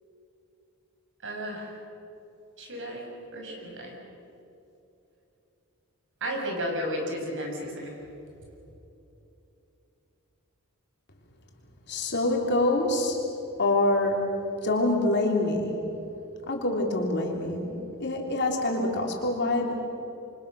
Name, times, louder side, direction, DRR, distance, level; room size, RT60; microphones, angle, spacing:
voice 1, 1.2-1.8 2.6-3.9 6.2-8.0, equal, 60° right, 1 dB, 6.4 m, -33 dB
voice 2, 11.9-13.2 13.6-14.2 14.6-15.8 16.5-19.8, left 2 dB, 55° left, 0 dB, 3.8 m, -26 dB
27.5 x 24.5 x 6.6 m, 2.9 s
head